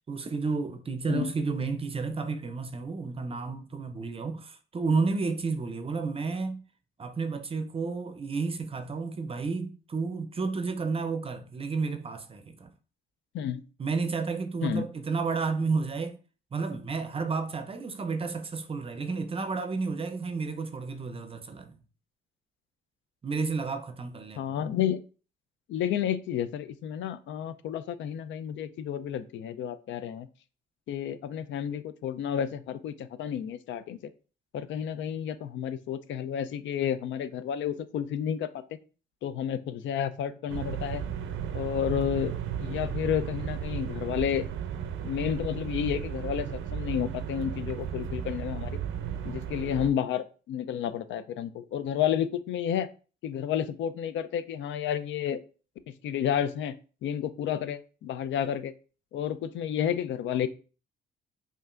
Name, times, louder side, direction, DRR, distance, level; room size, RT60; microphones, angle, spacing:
voice 1, 0.0-6.6 7.0-12.7 13.8-16.2 16.5-21.8 23.2-24.6, right 4 dB, 30° right, 0.5 m, -31 dB
voice 2, 24.4-25.0 25.7-30.3 30.9-34.1 34.5-38.5 39.2-41.0 41.5-42.3 42.6-44.5 45.0-46.5 46.7-48.8 49.2-52.9 53.2-55.4 56.0-56.7 57.0-58.7 59.1-60.5, left 9 dB, 70° left, 0.4 m, -31 dB
sound 1, 40.5-49.9, right 8 dB, 85° right, 0.5 m, -34 dB
5.2 x 2.5 x 2.4 m
cardioid pair, 90°, 20 cm